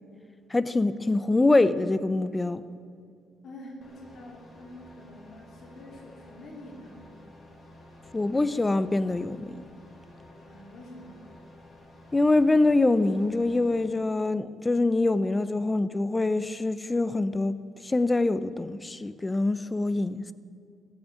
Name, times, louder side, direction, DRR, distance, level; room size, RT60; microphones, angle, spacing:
voice 1, 0.5-2.6 8.1-9.6 12.1-20.2, left 2 dB, 20° left, 0.8 m, -24 dB
voice 2, 3.4-7.1 10.4-11.3, left 1 dB, 60° left, 3.2 m, -46 dB
sound 1, 3.8-13.8, left 1 dB, 40° left, 4.6 m, -51 dB
15.0 x 9.2 x 9.8 m
cardioid pair, 90°, 0 cm